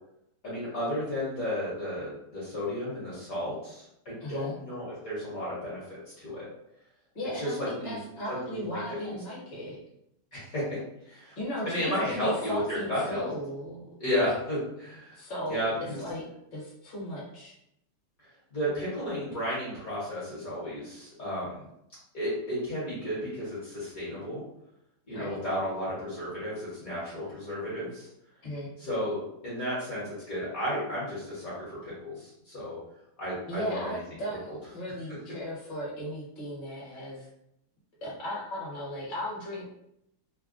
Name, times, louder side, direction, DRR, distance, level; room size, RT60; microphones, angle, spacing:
voice 1, 0.4-6.5 7.3-8.0 8.3-9.1 10.3-10.8 11.0-11.4 11.6-13.3 14.0-15.2 15.5-16.0 18.5-21.6 22.1-24.4 25.1-28.1 28.8-32.8 33.2-34.0 34.5-34.6, equal, 50° left, -8 dB, 1.3 m, -33 dB
voice 2, 4.2-4.5 7.1-9.8 11.3-13.9 15.1-17.5 25.1-25.4 28.4-28.7 33.5-37.3 38.0-39.7, equal, 30° left, -7 dB, 0.9 m, -36 dB
3.4 x 2.2 x 2.5 m, 0.79 s
omnidirectional pair, 2.4 m